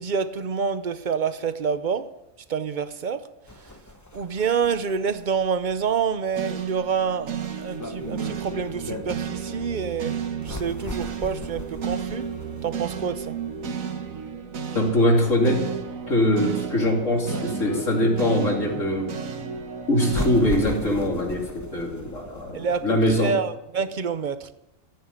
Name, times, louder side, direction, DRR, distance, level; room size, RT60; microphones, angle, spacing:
voice 1, 0.0-2.1 2.5-3.3 3.5-3.7 4.1-12.3 12.6-13.4 22.5-24.5, right 6 dB, 45° right, 0.7 m, -27 dB
sound 1, 3.5-23.3, left 2 dB, 15° left, 0.8 m, -39 dB
sound 2, 6.3-22.6, right 6 dB, 80° right, 1.6 m, -33 dB
voice 2, 14.7-15.7 16.1-19.1 19.9-23.3, left 1 dB, 70° left, 3.2 m, -22 dB
14.0 x 9.5 x 8.1 m
omnidirectional pair, 1.4 m